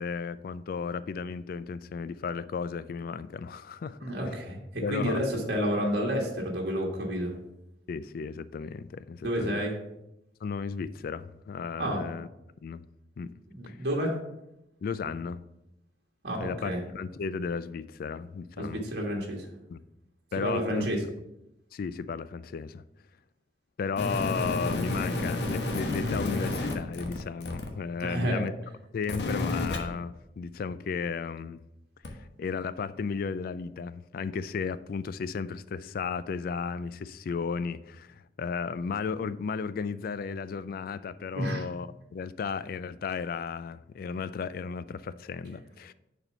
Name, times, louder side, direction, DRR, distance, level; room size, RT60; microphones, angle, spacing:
voice 1, 0.0-4.0 4.8-5.2 7.9-9.6 10.4-12.3 12.6-12.8 13.2-13.3 13.7-13.8 14.8-15.4 16.4-18.8 19.7-19.8 20.3-20.9 21.7-22.8 23.8-28.5 28.9-31.6 32.1-45.9, left 5 dB, 55° left, 0.3 m, -34 dB
voice 2, 4.0-7.3 9.2-9.8 11.8-12.0 13.5-14.2 16.2-16.8 18.6-19.4 20.4-21.0 28.0-28.4 41.3-41.6, equal, 60° right, 1.5 m, -30 dB
sound 1, 24.0-27.7 29.0-29.8 32.0-32.1, left 2 dB, 70° left, 1.1 m, -30 dB
6.8 x 4.4 x 5.6 m
head